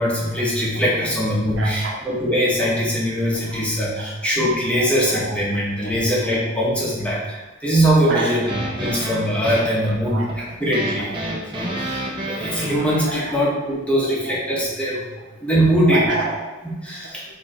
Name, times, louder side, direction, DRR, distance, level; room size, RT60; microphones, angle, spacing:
voice 1, 0.0-7.4 7.6-10.2 10.6-15.0 15.4-16.0 16.8-17.4, equal, 5° left, -6 dB, 1.4 m, -21 dB
voice 2, 1.6-2.0 2.6-2.7 3.3-3.6 4.7-5.2 5.8-6.4 8.0-8.3 8.6-8.9 9.5-10.5 11.0-11.2 13.1-13.3 14.2-14.3 15.8-16.7 17.0-17.4, right 3 dB, 80° right, -2 dB, 1.4 m, -30 dB
sound 1, 8.5-13.3, equal, 25° right, 1.1 m, -29 dB
7.5 x 3.3 x 4.4 m, 1.2 s
head